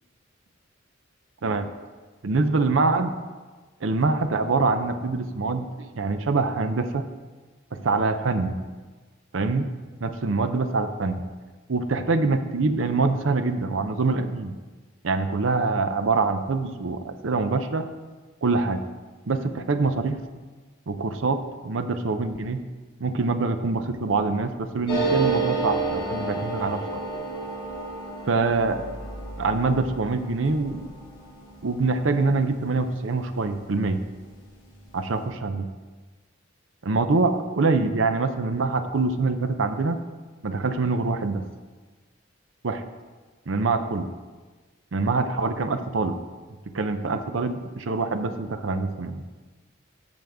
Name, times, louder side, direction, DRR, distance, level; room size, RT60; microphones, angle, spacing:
voice 1, 1.4-1.7 2.2-3.1 3.8-7.1 7.7-8.6 9.3-9.7 10.0-11.2 11.7-14.5 15.0-17.9 18.4-18.8 19.3-20.2 20.9-22.6 23.0-27.0 28.3-28.8 29.4-30.9 31.6-34.0 34.9-35.7 36.8-40.0 40.4-41.5 42.6-42.8 43.5-44.1 44.9-46.2 46.7-49.2, right 3 dB, 70° right, 9 dB, 0.6 m, -25 dB
sound 1, 24.9-34.0 34.3-34.4 34.6-35.2, right 3 dB, 25° left, 2.4 m, -31 dB
14.0 x 5.2 x 3.5 m, 1.3 s
head